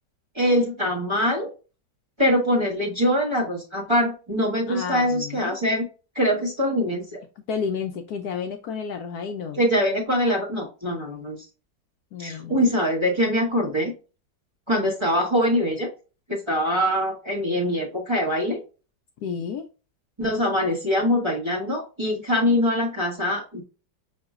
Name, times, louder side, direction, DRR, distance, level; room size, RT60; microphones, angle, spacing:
voice 1, 0.3-1.5 2.2-5.9 6.1-7.2 9.5-11.4 12.2-13.9 14.7-15.9 16.3-18.6 20.2-23.6, equal, 20° right, -3 dB, 1.2 m, -23 dB
voice 2, 4.7-5.5 7.5-9.6 12.1-12.6 19.2-19.7, left 6 dB, 70° left, 5 dB, 1.0 m, -31 dB
6.0 x 2.8 x 2.3 m, 0.33 s
omnidirectional pair, 1.9 m